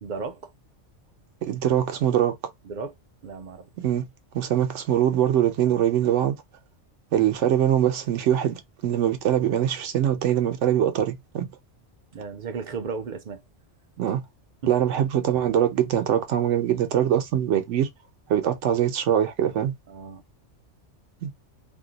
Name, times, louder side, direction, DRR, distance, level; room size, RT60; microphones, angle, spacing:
voice 1, 0.0-0.4 2.7-2.9 3.2-3.7 12.1-13.4 19.9-20.2, right 5 dB, 55° right, 0.5 m, -34 dB
voice 2, 1.4-2.4 3.8-4.1 4.3-6.4 7.1-11.5 14.0-14.2 14.7-17.9 18.3-19.7 21.2-21.3, right 10 dB, 80° right, 0.9 m, -23 dB
2.6 x 2.1 x 3.8 m
omnidirectional pair, 1.2 m